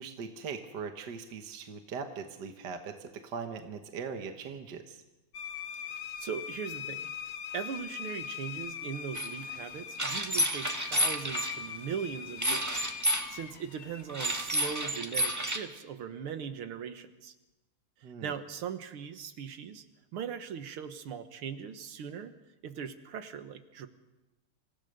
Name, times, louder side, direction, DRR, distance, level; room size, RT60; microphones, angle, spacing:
voice 1, 0.0-5.0 18.0-18.3, right 5 dB, 55° right, 6 dB, 1.8 m, -40 dB
sound 1, 5.3-15.0, left 8 dB, 55° left, 1.2 m, -42 dB
voice 2, 6.2-7.1 7.5-12.9 13.3-17.3 18.0-19.8 20.1-22.3 22.6-23.9, right 7 dB, 85° right, 10 dB, 2.2 m, -39 dB
sound 2, 9.1-9.3 10.0-11.5 12.4-13.3 14.1-15.6, equal, 10° right, 1.3 m, -30 dB
26.5 x 16.0 x 6.7 m, 1.0 s
omnidirectional pair, 2.3 m